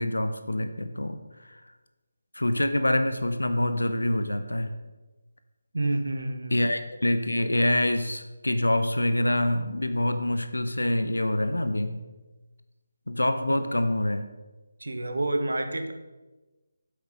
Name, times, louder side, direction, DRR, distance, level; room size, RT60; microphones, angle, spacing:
voice 1, 0.0-1.6 2.3-4.7 6.5-12.0 13.1-14.3, left 1 dB, 80° left, 9 dB, 0.8 m, -26 dB
voice 2, 5.7-6.6 14.8-15.9, right 2 dB, 70° right, 7 dB, 1.2 m, -28 dB
8.3 x 7.9 x 5.1 m, 1.2 s
figure-of-eight pair, 155°, 0 cm